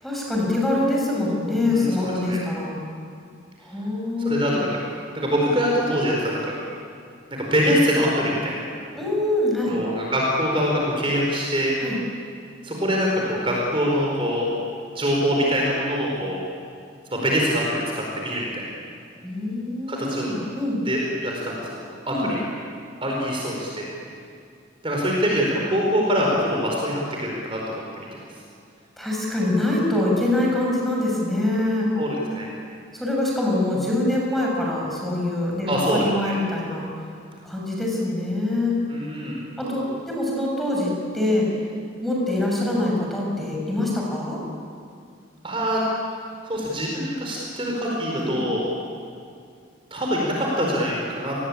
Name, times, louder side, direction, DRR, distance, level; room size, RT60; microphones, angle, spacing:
voice 1, 0.0-2.8 3.6-4.6 8.9-9.8 11.8-12.0 19.2-20.8 22.1-22.3 29.0-31.9 32.9-36.9 37.4-38.8 39.6-41.5 42.0-44.4 48.1-48.5, left 1 dB, ahead, -2 dB, 6.9 m, -24 dB
voice 2, 1.7-2.4 4.2-4.8 5.1-6.6 7.4-8.5 9.7-11.8 12.6-14.5 14.9-16.4 17.1-18.6 19.9-20.3 20.8-22.5 23.0-23.9 24.8-28.1 31.9-32.5 35.7-36.4 38.9-39.4 45.4-45.8 46.4-48.7 49.9-51.4, equal, 25° right, -2 dB, 4.8 m, -24 dB
30.0 x 20.5 x 8.8 m, 2.4 s
head